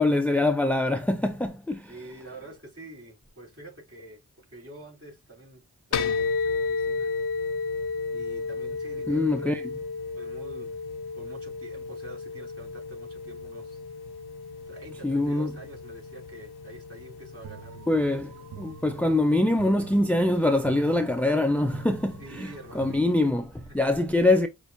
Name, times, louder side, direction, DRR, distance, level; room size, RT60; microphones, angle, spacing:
voice 1, 0.0-1.9 9.1-9.7 15.0-15.6 17.9-24.5, left 2 dB, 5° left, 0.5 m, -24 dB
voice 2, 1.9-5.6 5.9-7.1 8.1-9.6 10.1-10.8 11.2-13.8 14.7-18.1 22.2-23.1 23.7-23.9, right 2 dB, 35° right, 3.2 m, -46 dB
sound 1, 5.9-23.3, left 4 dB, 80° left, 0.7 m, -34 dB
sound 2, 17.4-23.8, right 11 dB, 55° right, 0.5 m, -48 dB
6.0 x 2.5 x 2.5 m
cardioid pair, 50°, 38 cm